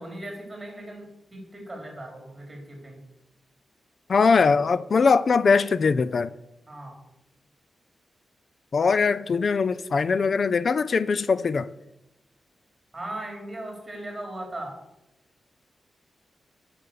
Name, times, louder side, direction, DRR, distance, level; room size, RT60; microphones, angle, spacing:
voice 1, 0.0-3.0 6.7-7.0 12.9-14.7, right 1 dB, 15° right, 3.8 m, -38 dB
voice 2, 4.1-6.3 8.7-11.7, left 5 dB, 50° left, 0.4 m, -21 dB
10.0 x 5.9 x 6.9 m
wide cardioid pair, 120°, 0 cm